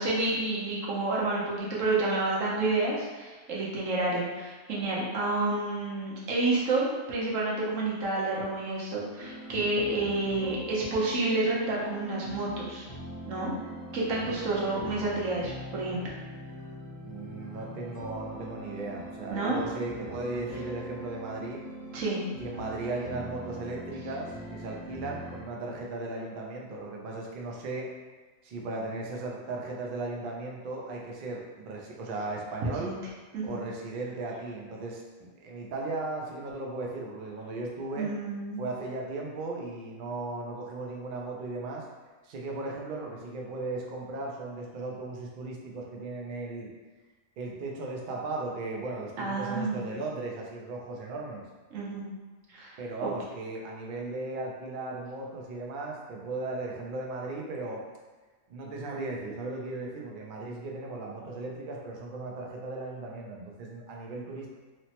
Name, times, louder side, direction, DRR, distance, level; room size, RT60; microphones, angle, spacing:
voice 1, 0.0-12.8 13.2-13.5 13.9-16.1 19.3-19.6 21.9-22.2 32.6-33.0 33.3-33.6 38.0-38.6 49.2-49.9 51.7-52.0 52.5-53.1, right 2 dB, 90° right, -5 dB, 1.1 m, -29 dB
sound 1, 9.2-25.4, equal, 40° left, 0.6 m, -42 dB
voice 2, 17.1-21.6 22.4-27.9 28.4-32.9 33.4-38.1 38.6-41.8 42.2-46.7 47.4-51.4 52.8-57.8 58.5-64.5, right 2 dB, 60° right, -1 dB, 0.5 m, -36 dB
3.1 x 2.0 x 2.8 m, 1.3 s
omnidirectional pair, 1.3 m